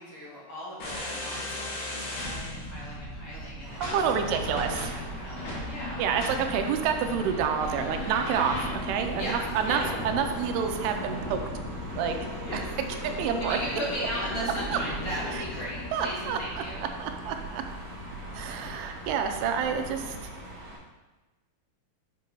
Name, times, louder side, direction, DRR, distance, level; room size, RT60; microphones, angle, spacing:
voice 1, 0.0-3.9 4.4-4.5 4.9-6.1 9.2-9.8 12.5-12.6 13.4-16.9, equal, 45° left, -8 dB, 2.1 m, -37 dB
sound 1, 0.8-20.5, left 1 dB, 65° left, 3.1 m, -37 dB
sound 2, 3.6-20.8, right 1 dB, 60° right, 1.9 m, -42 dB
voice 2, 3.8-4.9 6.0-11.4 12.0-12.2 13.0-13.6 14.7-14.8 15.3-15.4 15.9-16.6 17.0-17.6 18.3-20.3, right 7 dB, 85° right, 5 dB, 2.6 m, -28 dB
8.0 x 5.9 x 3.0 m, 1.2 s
omnidirectional pair, 4.6 m